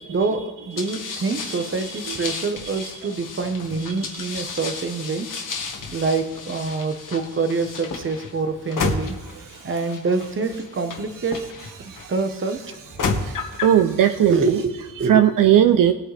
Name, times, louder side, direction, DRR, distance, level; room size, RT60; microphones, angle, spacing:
voice 1, 0.1-5.3 5.9-9.2 9.6-11.5 12.1-12.6 14.3-15.3, right 4 dB, 35° right, 7 dB, 1.1 m, -26 dB
sound 1, 0.8-12.0 12.7-13.8, left 4 dB, 60° left, 1.6 m, -32 dB
voice 2, 1.8-2.4 2.7-2.9 9.4-9.7 11.8-12.1 13.0-14.6 15.0-15.9, right 10 dB, 65° right, 8 dB, 0.6 m, -19 dB
20.0 x 8.6 x 3.4 m, 1.2 s
cardioid pair, 115°, 35 cm